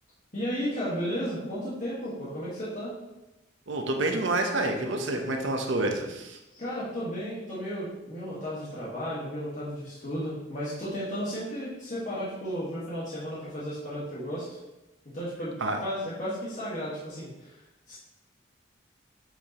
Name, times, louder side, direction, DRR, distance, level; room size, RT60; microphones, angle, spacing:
voice 1, 0.3-2.9 6.5-14.6 15.1-15.5 15.8-17.5 17.9-18.0, equal, 40° left, -9 dB, 1.6 m, -34 dB
voice 2, 3.7-6.4 15.6-15.8, right 2 dB, 80° right, 4 dB, 0.9 m, -28 dB
7.9 x 4.9 x 3.0 m, 0.97 s
head